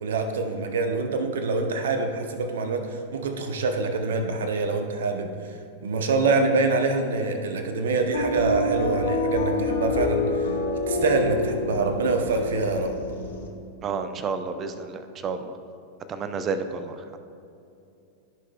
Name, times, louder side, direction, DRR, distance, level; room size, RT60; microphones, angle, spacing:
voice 1, 0.0-5.6 5.8-10.5 10.9-12.9, right 3 dB, 60° right, 6 dB, 0.8 m, -25 dB
sound 1, 8.1-13.5, left 2 dB, 60° left, 0.9 m, -27 dB
voice 2, 13.8-15.5 16.1-17.2, right 5 dB, 30° right, 9 dB, 0.5 m, -31 dB
14.0 x 5.8 x 2.3 m, 2.6 s
figure-of-eight pair, 90°, 0 cm